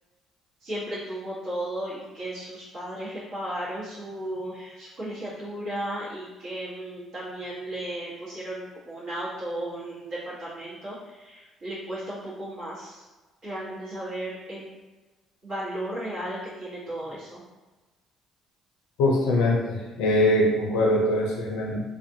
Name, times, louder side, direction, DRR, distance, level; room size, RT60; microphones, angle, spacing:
voice 1, 0.6-13.0 13.4-14.7 15.4-17.4, right 1 dB, 65° right, -11 dB, 1.1 m, -35 dB
voice 2, 19.0-21.8, left 1 dB, 80° left, -1 dB, 0.4 m, -22 dB
2.5 x 2.4 x 2.7 m, 1.2 s
supercardioid pair, 65°, 0 cm